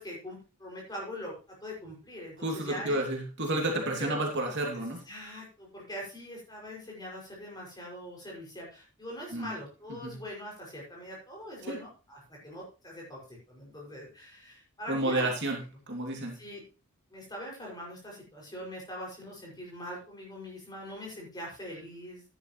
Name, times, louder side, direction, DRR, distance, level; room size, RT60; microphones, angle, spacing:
voice 1, 0.0-1.3 1.6-3.0 4.0-4.2 4.7-4.8 5.1-15.3 16.3-16.6 17.1-22.2, equal, 20° left, -2 dB, 6.4 m, -42 dB
voice 2, 2.4-5.0 9.3-9.5 9.9-10.1 11.7-11.8 14.9-15.6 15.9-16.3, right 1 dB, 55° right, 0 dB, 2.8 m, -30 dB
13.0 x 10.5 x 3.2 m, 0.32 s
head